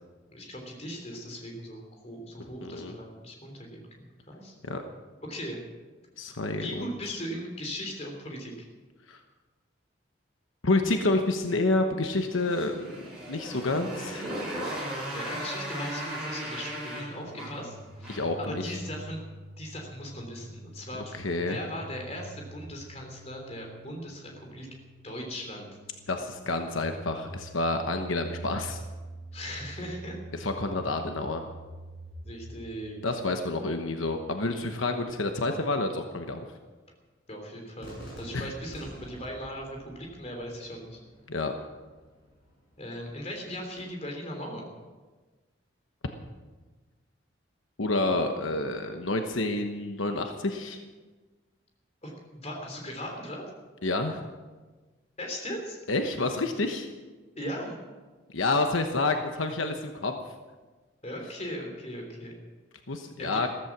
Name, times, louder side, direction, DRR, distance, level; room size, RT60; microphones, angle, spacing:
voice 1, 0.3-4.5 5.3-5.6 6.5-8.5 15.1-18.1 18.4-19.2 19.6-24.7 25.0-25.7 29.3-30.2 32.2-33.0 37.3-41.0 42.8-44.7 52.0-53.4 55.2-55.8 57.3-57.8 61.0-62.4 63.2-63.4, equal, 35° left, 1 dB, 3.4 m, -38 dB
voice 2, 2.6-3.0 4.6-4.8 6.2-7.2 9.1-9.2 10.6-12.9 13.3-14.4 18.1-18.6 21.1-21.6 26.1-28.8 30.4-31.5 33.0-36.4 38.3-38.5 41.3-41.5 47.8-50.8 53.8-54.2 55.9-56.9 58.3-60.1 62.9-63.5, left 2 dB, 85° left, 5 dB, 1.1 m, -29 dB
Motorcycle, 12.1-18.4, right 1 dB, 5° right, 6.4 m, -37 dB
sound 1, 16.9-36.1, right 2 dB, 75° right, 1.2 m, -46 dB
Cheering / Fireworks, 37.8-43.8, equal, 55° left, 6.5 m, -49 dB
14.5 x 14.5 x 6.0 m, 1.3 s
head